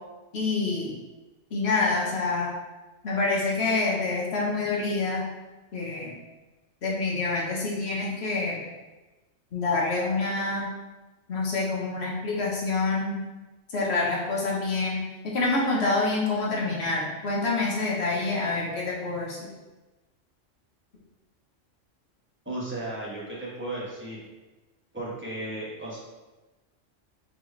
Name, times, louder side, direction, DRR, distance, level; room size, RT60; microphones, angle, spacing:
voice 1, 0.3-0.9 1.5-2.5 3.0-5.2 5.7-6.1 6.8-8.6 9.5-10.7 11.3-13.2 13.7-15.0 15.2-19.5, left 3 dB, 60° left, -3 dB, 1.2 m, -27 dB
voice 2, 22.4-24.3 24.9-26.0, right 1 dB, 10° right, -7 dB, 1.2 m, -35 dB
4.4 x 3.4 x 3.2 m, 1.1 s
omnidirectional pair, 1.3 m